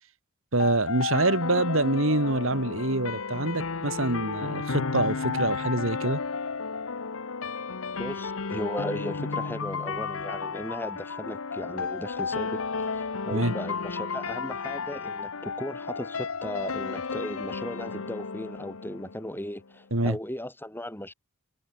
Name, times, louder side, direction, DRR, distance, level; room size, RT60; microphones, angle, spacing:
voice 1, 0.5-6.2 13.3-13.5 19.9-20.2, right 2 dB, 65° right, 3.1 m, -26 dB
sound 1, 0.6-19.5, left 4 dB, 70° left, 1.0 m, -33 dB
voice 2, 8.0-21.1, left 1 dB, 10° left, 7.4 m, -36 dB
head